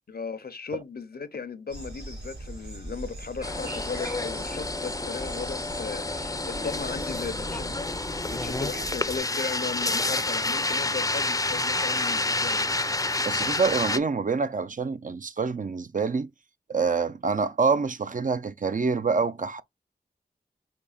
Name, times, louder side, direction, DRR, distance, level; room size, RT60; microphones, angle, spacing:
voice 1, 0.1-7.8 8.3-12.7, left 5 dB, 65° left, 0.7 m, -36 dB
sound 1, 1.7-9.2, right 1 dB, 75° right, 3.3 m, -41 dB
sound 2, 3.4-14.0, left 2 dB, 20° left, 0.5 m, -29 dB
voice 2, 13.2-16.3 16.7-19.6, right 4 dB, 50° right, 0.5 m, -26 dB
5.2 x 3.5 x 2.3 m
wide cardioid pair, 50°, 17 cm